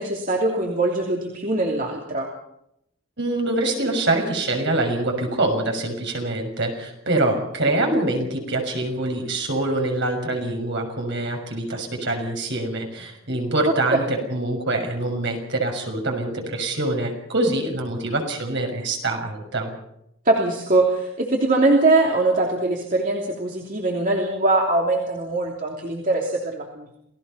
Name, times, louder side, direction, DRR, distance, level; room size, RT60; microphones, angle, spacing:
voice 1, 0.0-2.3 20.2-27.0, right 2 dB, 40° right, 0 dB, 3.0 m, -22 dB
voice 2, 3.2-19.7, right 2 dB, 55° right, 3 dB, 6.4 m, -25 dB
29.0 x 18.0 x 5.7 m, 0.79 s
head